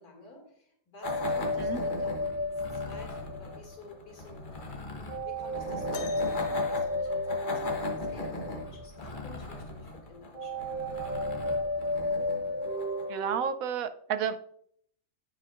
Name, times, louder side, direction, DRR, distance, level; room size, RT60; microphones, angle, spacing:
voice 1, 0.0-10.9, left 3 dB, 90° left, 2 dB, 2.6 m, -51 dB
sound 1, 1.0-13.2, left 1 dB, 35° left, 1.2 m, -40 dB
sound 2, 1.0-3.7 5.1-9.0 10.3-13.4, left 1 dB, 35° right, 1.1 m, -32 dB
sound 3, 5.9-7.8 9.5-9.6 10.4-10.6 11.5-11.6, left 5 dB, 65° left, 1.0 m, -46 dB
voice 2, 13.1-14.5, right 7 dB, 75° right, 10 dB, 1.0 m, -31 dB
16.5 x 5.6 x 2.4 m, 0.67 s
omnidirectional pair, 1.6 m